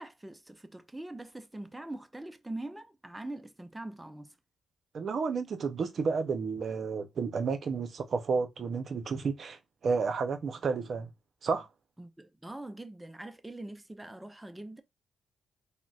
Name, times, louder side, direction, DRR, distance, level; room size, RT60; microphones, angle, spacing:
voice 1, 0.0-4.4 12.0-14.8, right 2 dB, 15° right, 0.5 m, -43 dB
voice 2, 4.9-11.1 11.4-11.7, right 5 dB, 60° right, 0.5 m, -31 dB
3.8 x 2.1 x 2.3 m
cardioid pair, 65°, 0 cm